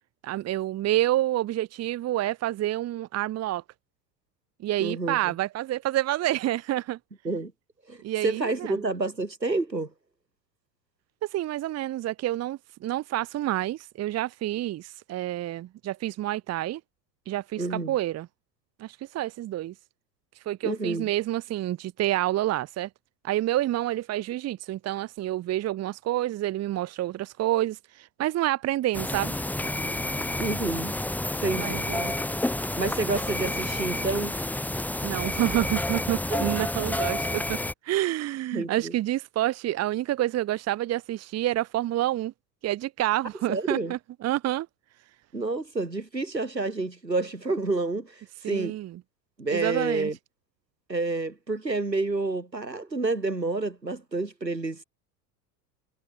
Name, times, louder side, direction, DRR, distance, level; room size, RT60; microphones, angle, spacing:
voice 1, 0.2-3.6 4.6-7.0 8.0-8.8 11.2-16.8 17.3-18.3 18.8-19.7 20.4-22.9 23.2-29.3 31.5-32.1 35.0-37.6 37.8-42.3 42.6-44.7 48.4-49.0 49.5-50.1, right 14 dB, 30° right, 1.4 m, -28 dB
voice 2, 4.8-5.3 7.2-7.5 7.9-9.9 17.6-17.9 20.6-21.1 30.4-30.9 31.4-31.8 32.7-34.3 36.3-36.5 38.5-38.9 43.5-43.9 45.3-48.8 49.4-50.2 50.9-54.8, right 3 dB, 85° right, 6.5 m, -29 dB
sound 1, 28.9-37.7, left 1 dB, 5° left, 1.1 m, -30 dB
figure-of-eight pair, 75°, 49 cm